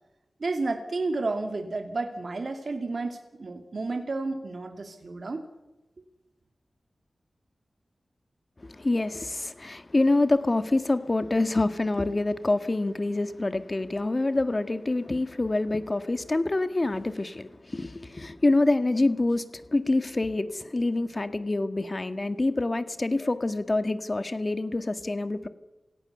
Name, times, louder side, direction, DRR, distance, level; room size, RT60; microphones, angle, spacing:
voice 1, 0.4-5.4, right 3 dB, 65° right, 6 dB, 2.9 m, -31 dB
voice 2, 8.6-25.5, left 2 dB, 40° left, 10 dB, 1.8 m, -26 dB
27.5 x 17.5 x 7.0 m, 1.0 s
cardioid pair, 40°, 0 cm